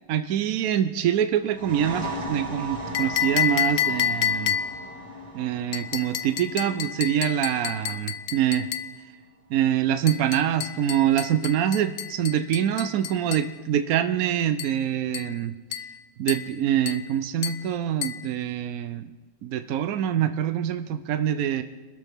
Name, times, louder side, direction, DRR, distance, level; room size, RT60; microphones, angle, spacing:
voice 1, 0.1-4.5 5.3-8.7 9.5-15.5 16.2-19.1 19.4-21.6, right 10 dB, 70° right, 9 dB, 0.8 m, -25 dB
sound 1, 1.4-8.8, right 1 dB, 55° right, 3.5 m, -37 dB
sound 2, 2.9-4.9 5.7-9.0 10.1-13.5 14.6-14.8 15.1-15.4 15.7-16.0 16.3-16.5 16.9-17.1 17.4-17.7 18.0-18.3, left 9 dB, 75° left, 1.4 m, -29 dB
25.5 x 13.0 x 3.6 m, 1.2 s
omnidirectional pair, 2.1 m